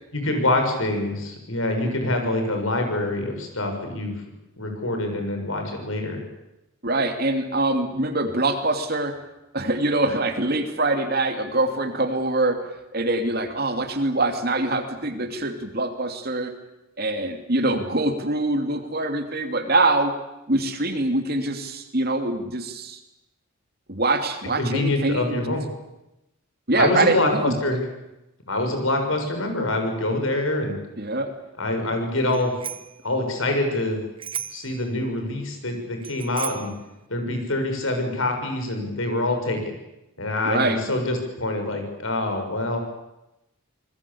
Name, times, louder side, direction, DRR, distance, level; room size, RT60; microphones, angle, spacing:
voice 1, 0.1-4.2 4.6-6.2 24.6-25.7 26.8-27.8 28.5-30.8 31.6-32.5 33.0-34.0 34.5-36.7 37.1-39.7 40.2-42.8, left 2 dB, 70° left, 4 dB, 6.7 m, -25 dB
voice 2, 6.8-9.1 9.5-12.6 12.9-16.5 17.0-20.1 20.5-23.0 23.9-25.4 26.7-27.6 31.0-31.3 40.4-40.8, right 2 dB, 45° right, 6 dB, 2.9 m, -24 dB
Bicycle bell, 32.3-33.0 34.2-34.8 36.0-36.8, right 8 dB, 25° right, 1.0 m, -34 dB
27.0 x 20.5 x 8.7 m, 0.93 s
head